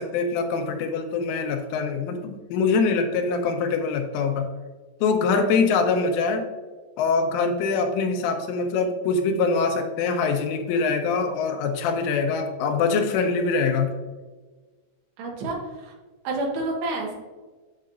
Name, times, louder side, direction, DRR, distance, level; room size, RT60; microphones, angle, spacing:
voice 1, 0.0-4.4 5.0-6.4 7.0-13.9, left 4 dB, 85° left, 4 dB, 3.2 m, -24 dB
voice 2, 15.2-15.9 16.2-17.2, right 2 dB, 65° right, -1 dB, 3.2 m, -29 dB
8.5 x 6.6 x 2.5 m, 1.3 s
omnidirectional pair, 5.9 m